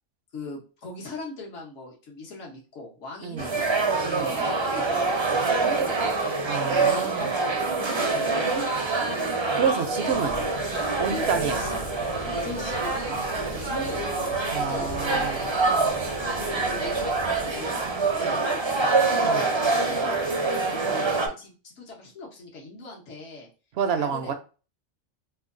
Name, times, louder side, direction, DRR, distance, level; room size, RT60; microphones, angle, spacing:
voice 1, 0.3-3.8 4.1-6.0 6.8-9.1 11.1-11.8 12.2-13.2 13.6-14.1 14.6-15.8 16.3-18.9 19.9-23.5 24.0-24.3, left 2 dB, 70° left, 1.4 m, -40 dB
voice 2, 3.2-3.6 4.0-4.3 6.4-7.3 9.5-10.4 11.0-11.7 14.5-15.5 19.2-19.5 23.7-24.3, right 6 dB, 65° right, 0.7 m, -28 dB
sound 1, 3.4-21.3, right 3 dB, 35° right, 0.4 m, -26 dB
Bird / Rain, 10.1-18.3, left 1 dB, 35° left, 0.6 m, -40 dB
3.1 x 2.3 x 3.7 m
omnidirectional pair, 1.3 m